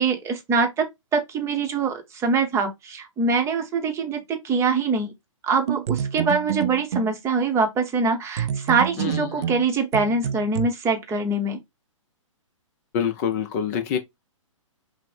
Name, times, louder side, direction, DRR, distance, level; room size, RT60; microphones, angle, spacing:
voice 1, 0.0-5.1 5.4-11.6, right 4 dB, 15° right, 0.8 m, -24 dB
sound 1, 5.7-7.2 8.4-10.7, right 9 dB, 55° right, 0.4 m, -28 dB
voice 2, 9.0-9.5 12.9-14.0, left 8 dB, 30° left, 0.5 m, -26 dB
5.8 x 2.1 x 3.3 m
figure-of-eight pair, 120°, 17 cm